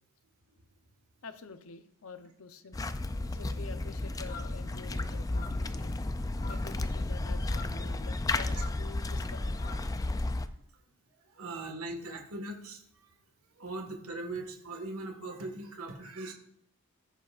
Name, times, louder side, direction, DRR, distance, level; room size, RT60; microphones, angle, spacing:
voice 1, 1.2-2.8 3.3-6.0 6.5-9.6, left 4 dB, 70° left, 9 dB, 0.7 m, -48 dB
sound 1, 2.7-10.5, left 2 dB, 15° left, 0.3 m, -33 dB
voice 2, 3.0-3.6 6.3-6.5 8.5-8.6 10.3-10.4 11.3-13.1 13.6-16.3, right 2 dB, 75° right, 3 dB, 1.6 m, -40 dB
sound 2, 4.2-9.1 9.4-10.4, left 4 dB, 40° left, 1.2 m, -50 dB
14.0 x 8.9 x 2.5 m, 0.71 s
head